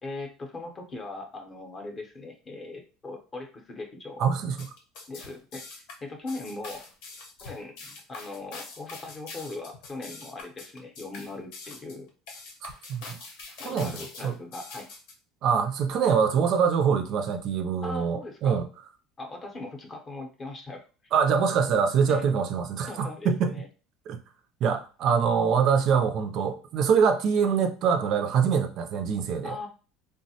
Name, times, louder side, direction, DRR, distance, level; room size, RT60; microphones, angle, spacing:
voice 1, 0.0-4.2 5.1-6.8 7.4-12.1 13.6-14.9 17.8-18.6 19.2-21.1 22.1-22.3 22.8-23.7 27.4-27.5 29.4-29.7, left 2 dB, 25° left, 0.6 m, -40 dB
voice 2, 4.2-4.7 12.6-13.2 13.6-14.3 15.4-18.7 21.1-23.5 24.1-24.2 24.6-29.5, right 6 dB, 45° right, 0.3 m, -24 dB
sound 1, 4.6-15.1, left 3 dB, 75° left, 0.8 m, -44 dB
3.3 x 2.1 x 2.7 m
cardioid pair, 155°, 0 cm